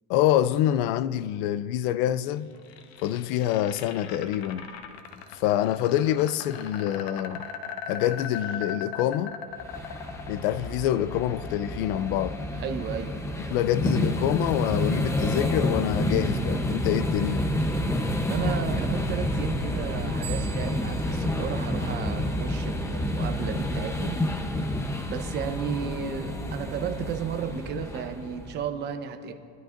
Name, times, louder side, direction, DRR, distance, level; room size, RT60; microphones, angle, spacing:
voice 1, 0.1-2.5 3.0-4.7 5.3-7.5 7.9-9.4 10.3-12.4 13.5-17.4, left 12 dB, 60° left, 0.5 m, -26 dB
sound 1, 2.3-14.4, left 7 dB, 85° left, 1.3 m, -40 dB
sound 2, 9.6-28.7, left 1 dB, 10° left, 0.8 m, -29 dB
voice 2, 12.5-13.2 18.3-24.2 25.0-29.3, right 8 dB, 35° right, 1.0 m, -33 dB
sound 3, 20.2-22.7, right 16 dB, 70° right, 1.2 m, -46 dB
24.0 x 11.5 x 2.6 m
supercardioid pair, 145°, 30 cm